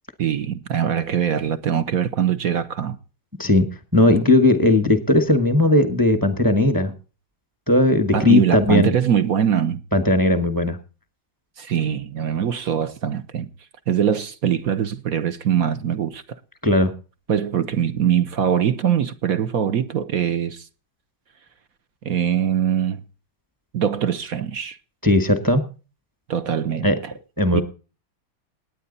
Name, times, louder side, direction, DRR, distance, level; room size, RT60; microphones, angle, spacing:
voice 1, 0.2-3.0 8.1-9.8 11.6-13.5 13.9-16.4 17.3-20.7 22.0-23.0 23.7-24.8 26.3-27.1 27.5-27.6, right 9 dB, 55° right, 1.1 m, -22 dB
voice 2, 3.9-6.9 7.7-8.9 9.9-10.8 16.6-16.9 25.0-25.6 26.8-26.9 27.4-27.6, left 2 dB, 10° right, 1.2 m, -17 dB
18.5 x 9.4 x 4.1 m
omnidirectional pair, 2.2 m